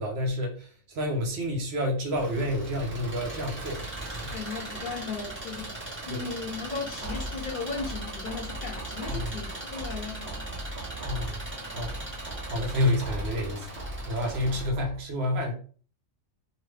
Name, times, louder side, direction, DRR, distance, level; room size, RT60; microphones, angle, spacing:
voice 1, 0.0-3.8 4.2-4.3 6.1-6.2 9.1-9.3 11.0-11.4 11.7-11.9 12.4-13.7 14.1-15.5, left 1 dB, 65° right, 0.9 m, -29 dB
Engine, 2.1-14.7, right 2 dB, 10° right, 0.7 m, -39 dB
voice 2, 4.3-10.5, left 4 dB, 55° left, 0.7 m, -36 dB
sound 1, 7.0-15.0, equal, 45° right, 0.6 m, -38 dB
3.0 x 2.1 x 3.2 m
omnidirectional pair, 1.2 m